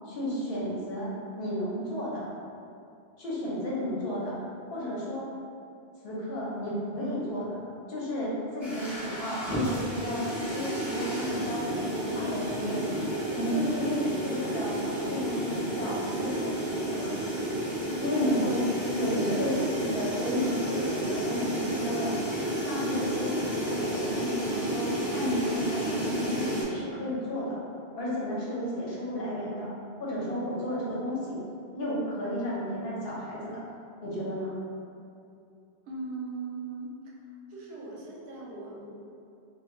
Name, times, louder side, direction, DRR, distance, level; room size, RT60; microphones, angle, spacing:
voice 1, 0.1-2.2 3.2-4.4 4.7-5.3 6.0-7.6 7.9-12.8 13.3-17.1 18.0-18.6 19.0-22.1 22.6-27.6 27.9-29.7 30.0-31.4 31.7-33.6 34.0-34.5, equal, 65° left, -6 dB, 0.9 m, -32 dB
sound 1, 8.6-26.6, right 1 dB, ahead, 0.5 m, -31 dB
voice 2, 17.9-18.4 35.9-36.9 37.5-38.9, right 3 dB, 75° right, -4 dB, 0.8 m, -39 dB
2.2 x 2.2 x 3.6 m, 2.5 s
omnidirectional pair, 1.1 m